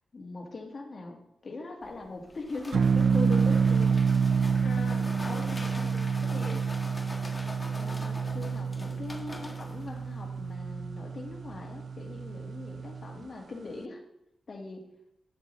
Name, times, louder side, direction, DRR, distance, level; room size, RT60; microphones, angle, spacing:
voice 1, 0.1-4.0 5.5-5.8 7.8-14.0 14.5-14.8, left 3 dB, 50° left, 1 dB, 1.7 m, -41 dB
sound 1, 1.8-10.5, left 1 dB, 20° left, 1.2 m, -44 dB
sound 2, 2.7-13.3, right 5 dB, 65° right, 0.3 m, -28 dB
voice 2, 4.6-6.6, left 3 dB, 75° left, -1 dB, 1.3 m, -42 dB
9.2 x 6.9 x 3.1 m, 0.83 s
cardioid pair, 65°, 0 cm